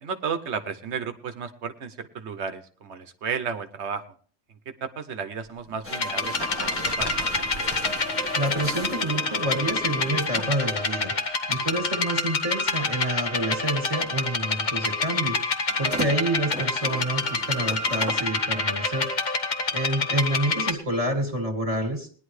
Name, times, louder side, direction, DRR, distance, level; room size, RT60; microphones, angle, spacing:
voice 1, 0.0-4.0 4.5-7.4, right 6 dB, 80° right, 9 dB, 1.2 m, -33 dB
sound 1, 5.4-8.8 9.0-10.9, left 1 dB, 25° left, 0.9 m, -39 dB
sound 2, 5.8-10.5 11.7-11.8 15.7-18.3, right 1 dB, 10° right, 1.4 m, -38 dB
sound 3, 5.9-20.7, left 3 dB, 45° left, 1.1 m, -27 dB
voice 2, 8.4-11.2 11.5-19.1 19.7-22.1, right 1 dB, 30° right, 5 dB, 2.1 m, -28 dB
19.5 x 10.5 x 3.2 m, 0.43 s
omnidirectional pair, 1.1 m